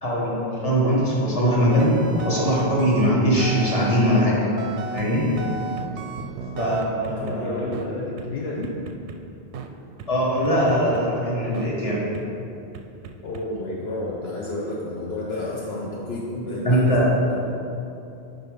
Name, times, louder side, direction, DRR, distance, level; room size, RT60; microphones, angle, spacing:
voice 1, 0.0-2.0 2.2-4.4 4.9-5.3 6.6-7.6 10.1-12.1 16.3-17.1, equal, 35° left, -6 dB, 1.7 m, -21 dB
sound 1, 1.7-4.3 4.6-7.4 7.7-7.9 8.2-8.3 8.6-9.2 9.5-9.7 10.0-10.1 10.5-11.0 11.5-11.7 12.1-12.2 12.7-13.4, right 5 dB, 90° right, 0.9 m, -34 dB
voice 2, 6.6-8.7 13.2-17.5, left 2 dB, 70° left, -3 dB, 1.0 m, -31 dB
8.8 x 4.2 x 5.2 m, 2.8 s
omnidirectional pair, 1.1 m